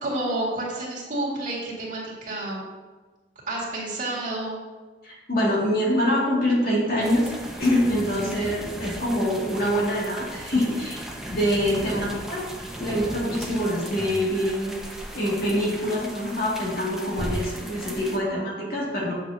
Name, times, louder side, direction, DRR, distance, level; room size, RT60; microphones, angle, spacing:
voice 1, 0.0-2.6 3.5-4.6 8.2-8.5 11.7-11.9, right 1 dB, 45° right, -5 dB, 1.9 m, -30 dB
voice 2, 5.0-7.3 7.6-11.0 11.3-12.4 12.8-14.8 15.1-19.1, equal, 60° left, -5 dB, 2.2 m, -25 dB
sound 1, 7.0-18.2, equal, 5° right, 0.7 m, -36 dB
7.5 x 6.5 x 2.8 m, 1.3 s
head